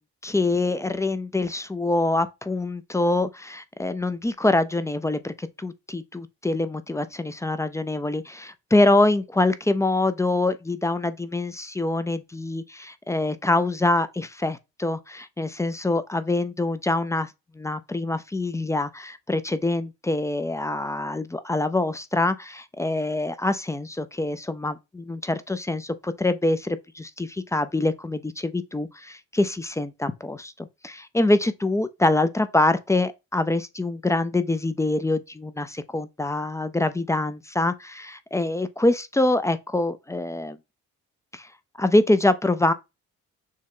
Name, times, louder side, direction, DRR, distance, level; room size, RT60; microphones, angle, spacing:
voice 1, 0.2-17.3 17.6-40.6 41.3-41.5 41.8-42.7, left 2 dB, 10° left, 0.4 m, -25 dB
6.3 x 2.2 x 3.6 m
cardioid pair, 90°, 30 cm